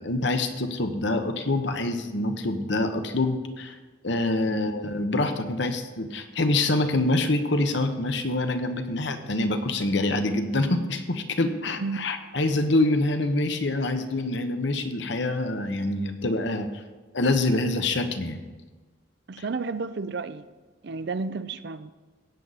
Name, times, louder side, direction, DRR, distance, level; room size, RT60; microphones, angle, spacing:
voice 1, 0.0-3.8 4.0-16.7 17.1-18.4 19.4-19.5, left 2 dB, 60° left, 1.0 m, -26 dB
voice 2, 11.8-12.1 19.3-20.4 20.8-21.9, right 4 dB, 55° right, 0.5 m, -32 dB
16.0 x 9.1 x 4.1 m
head